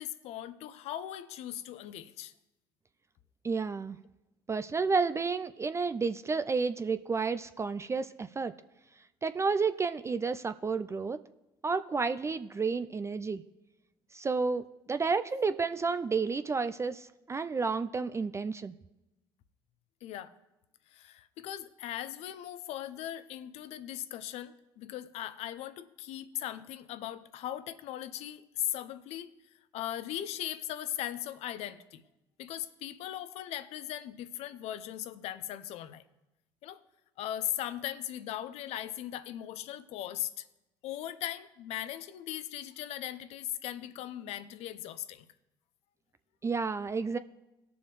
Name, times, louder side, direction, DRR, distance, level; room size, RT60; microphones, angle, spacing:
voice 1, 0.0-2.3 20.0-20.3 20.9-29.3 29.7-32.0 32.4-36.0 36.6-36.8 37.2-40.5 40.8-45.3, left 12 dB, 60° left, 14 dB, 0.7 m, -39 dB
voice 2, 3.4-4.0 4.5-8.5 9.2-11.2 11.6-13.4 14.1-18.7 46.4-47.2, right 4 dB, 25° right, 11 dB, 0.4 m, -31 dB
19.5 x 7.0 x 3.2 m, 0.97 s
hypercardioid pair, 60°, 12 cm